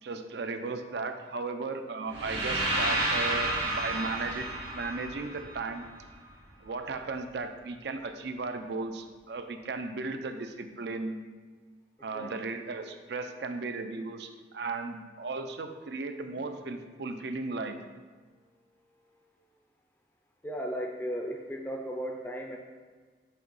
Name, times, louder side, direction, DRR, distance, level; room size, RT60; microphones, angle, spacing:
voice 1, 0.0-4.5 4.7-5.8 6.6-11.2 12.0-17.8, right 3 dB, 60° right, 7 dB, 0.5 m, -36 dB
sound 1, 2.1-6.1, right 1 dB, 90° right, 1.7 m, -31 dB
voice 2, 20.4-22.6, equal, 10° left, 2 dB, 0.5 m, -35 dB
7.6 x 2.9 x 5.3 m, 1.5 s
head